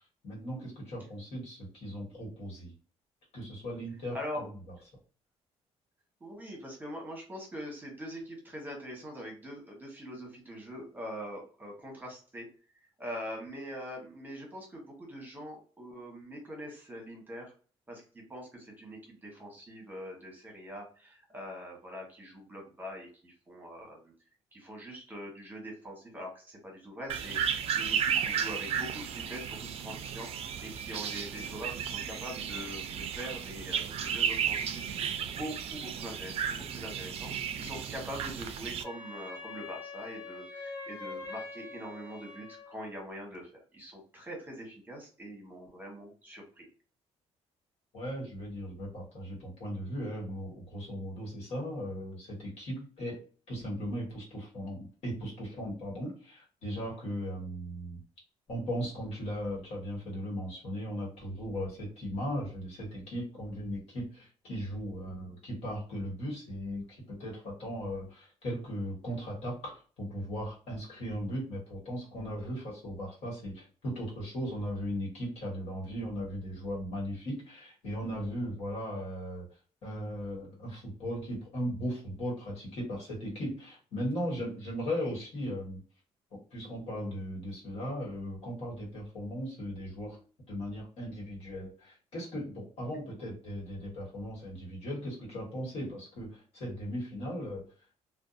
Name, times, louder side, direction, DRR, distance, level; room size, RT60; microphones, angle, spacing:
voice 1, 0.2-2.7 3.3-4.5 47.9-53.2 53.5-58.0 58.5-79.4 79.8-85.8 86.3-90.2 90.5-97.7, equal, 65° left, -3 dB, 1.4 m, -37 dB
voice 2, 4.1-4.5 6.2-12.4 13.0-17.5 17.9-24.1 24.5-34.8 35.2-46.7, equal, 15° right, 0 dB, 1.0 m, -43 dB
sound 1, 27.1-38.8, right 8 dB, 60° right, 0.4 m, -34 dB
Wind instrument woodwind instrument, 38.8-42.9, left 4 dB, 35° left, 0.6 m, -44 dB
2.6 x 2.2 x 2.4 m, 0.39 s
cardioid pair, 115°, 12 cm